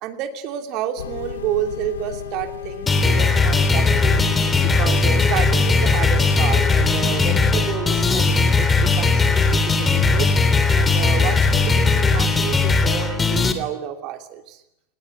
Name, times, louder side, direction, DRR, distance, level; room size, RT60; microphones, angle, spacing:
voice 1, 0.0-4.2 4.6-10.3 10.7-14.6, right 11 dB, 40° right, 6 dB, 3.0 m, -30 dB
sound 1, 1.0-8.2, left 8 dB, 65° left, 1.6 m, -34 dB
sound 2, 2.9-13.5, left 4 dB, 15° left, 3.2 m, -18 dB
28.0 x 20.5 x 8.2 m, 0.84 s
figure-of-eight pair, 90°, 0 cm